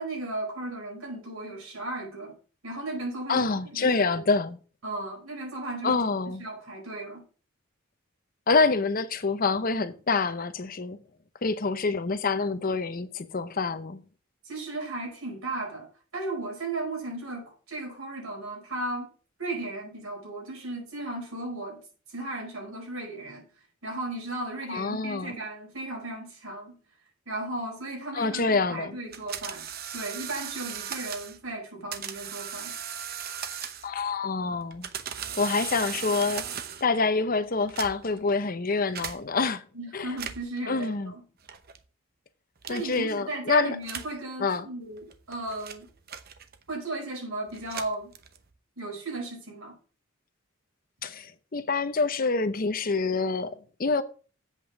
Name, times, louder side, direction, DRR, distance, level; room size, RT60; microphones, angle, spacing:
voice 1, 0.0-2.4 2.6-3.5 3.8-4.2 4.8-6.0 6.4-7.2 14.4-19.1 19.4-21.8 22.1-23.4 23.8-26.8 27.2-29.7 29.9-32.7 39.7-41.2 42.7-45.9 46.7-48.1 48.8-49.7, right 2 dB, 90° right, 5.0 m, -35 dB
voice 2, 3.3-4.6 5.8-6.4 8.5-11.0 11.4-14.0 24.7-25.3 28.1-29.0 33.8-34.9 35.4-36.5 36.8-39.6 39.9-40.2 40.7-41.1 42.7-43.8 44.4-44.7 51.0-54.0, left 4 dB, 45° left, 0.7 m, -26 dB
sound 1, 29.1-31.4 31.9-34.0 34.6-36.9 37.6-38.2 38.9-39.2 40.1-40.6 41.5-41.8 42.6-43.0 43.8-44.2 45.0-46.7 47.5-48.5, right 8 dB, 45° right, 0.8 m, -37 dB
8.1 x 5.4 x 7.1 m
head